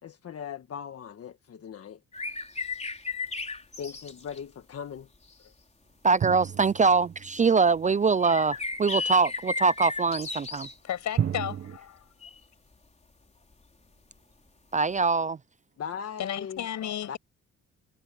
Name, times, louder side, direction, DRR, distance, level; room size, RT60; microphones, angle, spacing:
voice 1, 0.0-2.0 3.8-5.1 15.8-16.6 17.1-17.2, left 7 dB, 50° left, 1.6 m, -38 dB
sound 1, 2.1-4.4 5.3-5.4 6.3-6.4 8.2-10.7 12.2-12.4 15.0-15.1, left 3 dB, 20° left, 4.1 m, -34 dB
voice 2, 6.0-10.7 14.7-15.4, right 4 dB, 25° right, 0.5 m, -23 dB
sound 2, 6.2-7.9 11.2-11.8, right 9 dB, 45° right, 0.9 m, -32 dB
voice 3, 10.8-12.1 16.2-17.2, left 10 dB, 70° left, 6.4 m, -33 dB
cardioid pair, 90°, 30 cm